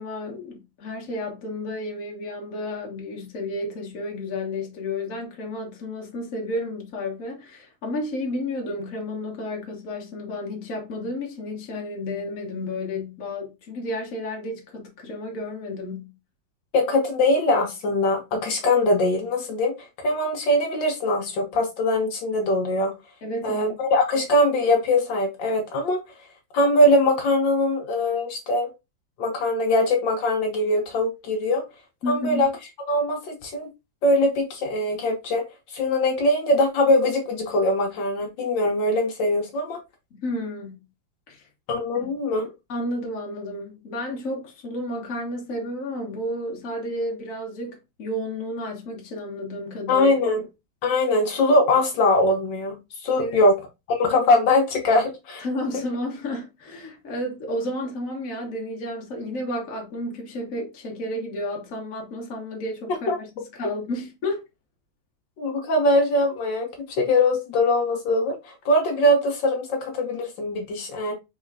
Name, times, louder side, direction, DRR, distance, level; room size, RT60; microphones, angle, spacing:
voice 1, 0.0-16.1 23.2-23.7 32.0-32.5 40.1-40.8 41.3-41.4 41.9-42.1 42.7-50.1 53.2-53.4 55.4-64.4, left 1 dB, 50° left, 1.5 m, -32 dB
voice 2, 16.7-22.9 23.4-26.0 26.5-28.7 29.2-31.6 32.1-32.5 32.9-33.7 34.0-39.8 41.7-42.5 49.9-50.4 50.8-53.6 53.9-55.4 63.1-63.2 65.4-66.7 67.0-71.1, left 1 dB, 75° left, 1.6 m, -22 dB
4.2 x 3.8 x 2.4 m
omnidirectional pair, 2.1 m